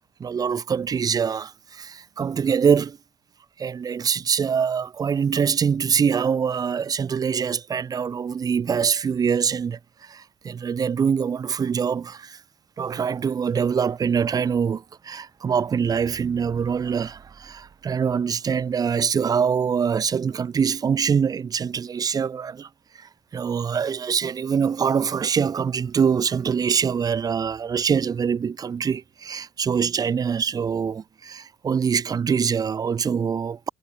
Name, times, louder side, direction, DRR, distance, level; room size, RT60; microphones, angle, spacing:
voice 1, 0.2-3.0 3.6-12.4 12.8-22.7 22.9-33.7, right 6 dB, 25° right, 1.6 m, -24 dB
cardioid pair, 180°, 14 cm